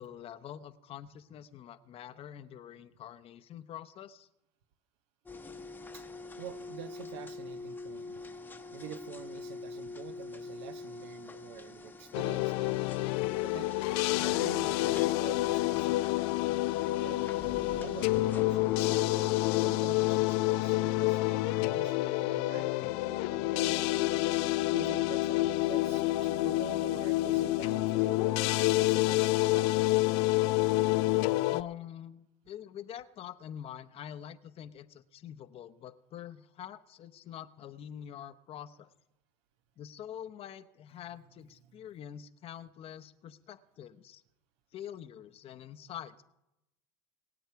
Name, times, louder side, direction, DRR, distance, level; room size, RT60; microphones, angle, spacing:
voice 1, 0.0-4.3 31.5-38.9 39.8-44.2 44.7-46.2, left 10 dB, 45° left, 12 dB, 0.8 m, -45 dB
sound 1, 5.3-19.9, left 3 dB, 15° left, 0.9 m, -46 dB
voice 2, 6.4-8.2 8.7-12.9 13.4-13.7 14.2-16.1 17.0-19.3 19.6-23.9 24.7-30.0 41.7-41.8, right 10 dB, 75° right, 10 dB, 1.2 m, -47 dB
sound 2, 12.1-31.6, left 18 dB, 70° left, 0.5 m, -28 dB
23.5 x 8.0 x 4.7 m, 0.91 s
supercardioid pair, 110°, 14 cm